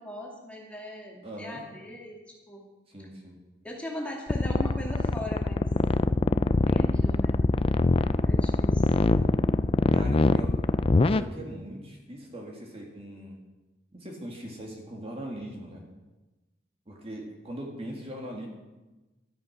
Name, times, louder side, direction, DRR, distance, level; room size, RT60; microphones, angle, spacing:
voice 1, 0.0-2.7 3.6-5.7 6.7-7.5 8.2-8.9, left 1 dB, 5° left, -2 dB, 2.3 m, -39 dB
voice 2, 1.2-1.6 2.9-3.3 9.9-10.6 11.1-13.4 13.9-15.8 16.9-18.5, equal, 35° right, 0 dB, 2.0 m, -40 dB
sound 1, 4.3-11.2, left 3 dB, 30° left, 0.4 m, -23 dB
12.5 x 9.5 x 5.9 m, 1.1 s
head